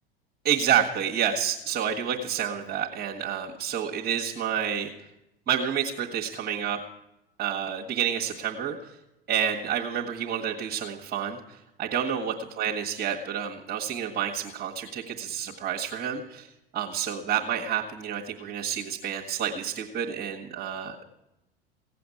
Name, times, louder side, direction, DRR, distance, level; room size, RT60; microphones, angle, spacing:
voice 1, 0.4-4.9 5.5-6.8 7.4-8.8 9.3-11.4 11.8-16.5 16.7-20.9, right 9 dB, 30° right, -2 dB, 1.6 m, -29 dB
16.5 x 7.7 x 9.8 m, 0.92 s
figure-of-eight pair, 80°, 31 cm